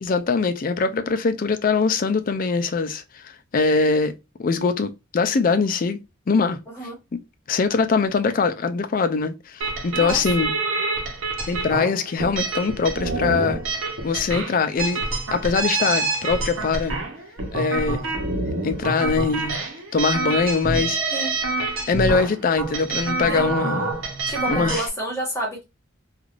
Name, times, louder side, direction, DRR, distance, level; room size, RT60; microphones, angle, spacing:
voice 1, 0.0-4.1 4.4-6.0 6.3-6.6 7.5-10.5 11.5-13.6 14.0-15.0 15.3-17.0 17.5-18.0 18.6-19.6 19.9-21.0 21.9-23.9 24.5-24.8, left 4 dB, 45° left, 0.4 m, -22 dB
voice 2, 6.7-7.0 9.9-10.2 21.1-21.3 23.3-23.6 24.3-25.6, right 1 dB, 15° left, 1.2 m, -29 dB
sound 1, 9.6-24.9, right 3 dB, 80° right, 0.9 m, -27 dB
3.2 x 2.4 x 2.4 m
head